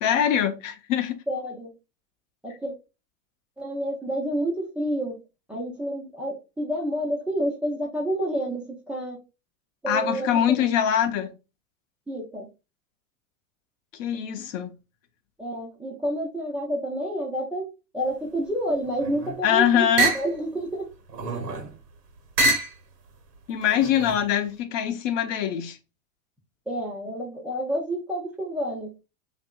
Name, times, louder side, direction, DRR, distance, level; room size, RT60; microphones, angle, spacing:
voice 1, 0.0-1.2 9.9-11.3 14.0-14.7 19.4-20.1 23.5-25.8, left 9 dB, 55° left, 0.7 m, -23 dB
voice 2, 1.3-1.7 2.4-2.7 3.6-5.2 5.5-9.2 9.8-10.7 12.1-12.5 15.4-20.9 21.2-21.5 26.7-28.9, equal, 5° right, 0.4 m, -29 dB
Bottle Clink, 18.9-19.4 20.0-20.3 21.1-21.7 22.4-22.8 23.6-24.2, right 2 dB, 85° right, 1.1 m, -26 dB
2.7 x 2.5 x 2.2 m
hypercardioid pair, 100°, 46 cm